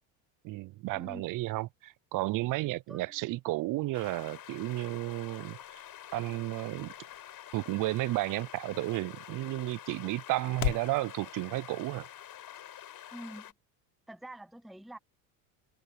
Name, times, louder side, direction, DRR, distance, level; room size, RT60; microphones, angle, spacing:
voice 1, 0.4-5.8 6.1-6.9 7.5-12.1, right 18 dB, 45° right, 0.5 m, -33 dB
sound 1, 3.9-13.5, left 12 dB, 50° left, 4.5 m, -48 dB
sound 2, 4.7-11.0, left 22 dB, 85° left, 1.3 m, -42 dB
voice 2, 13.1-13.5 14.1-15.0, right 1 dB, ahead, 1.1 m, -45 dB
supercardioid pair, 110°, 46 cm